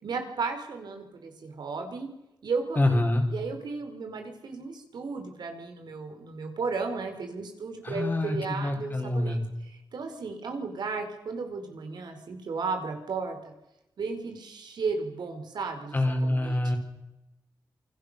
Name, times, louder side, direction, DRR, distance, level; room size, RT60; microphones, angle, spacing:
voice 1, 0.0-2.1 2.4-2.9 3.3-13.5 14.0-16.7, right 4 dB, 75° right, 5 dB, 4.6 m, -34 dB
voice 2, 2.8-3.2 7.8-9.4 15.9-16.8, left 1 dB, 25° left, 4 dB, 4.6 m, -26 dB
28.0 x 21.5 x 6.7 m, 0.92 s
wide cardioid pair, 130°, 7 cm